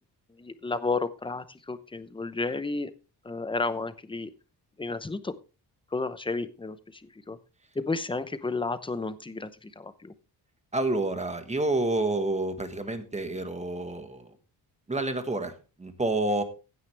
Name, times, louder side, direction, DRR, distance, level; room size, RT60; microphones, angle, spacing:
voice 1, 0.3-2.9 3.2-4.3 4.8-5.4 5.9-7.4 7.7-10.1, left 3 dB, 10° left, 13 dB, 0.7 m, -32 dB
voice 2, 10.7-14.3 14.9-16.4, right 2 dB, 15° right, 8 dB, 1.5 m, -29 dB
15.5 x 9.4 x 3.4 m, 0.32 s
wide cardioid pair, 175°, 42 cm